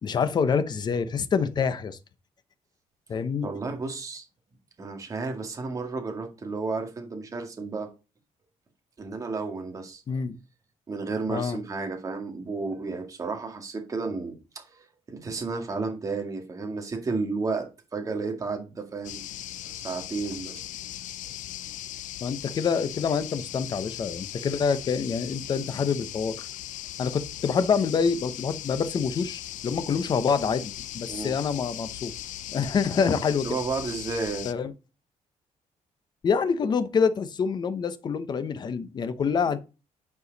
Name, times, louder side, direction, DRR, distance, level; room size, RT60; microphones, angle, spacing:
voice 1, 0.0-2.0 3.1-3.5 10.1-10.4 11.3-11.6 22.2-26.4 27.0-32.1 32.5-33.5 34.4-34.7 36.2-39.6, left 6 dB, 35° left, 0.8 m, -26 dB
voice 2, 3.4-4.3 4.8-7.9 9.0-10.0 10.9-19.2 19.7-20.6 29.9-30.0 31.1-31.4 33.4-34.5, right 4 dB, 25° right, 2.1 m, -32 dB
sound 1, 19.0-34.5, left 13 dB, 85° left, 0.5 m, -38 dB
9.6 x 4.8 x 4.0 m
cardioid pair, 165°, 13 cm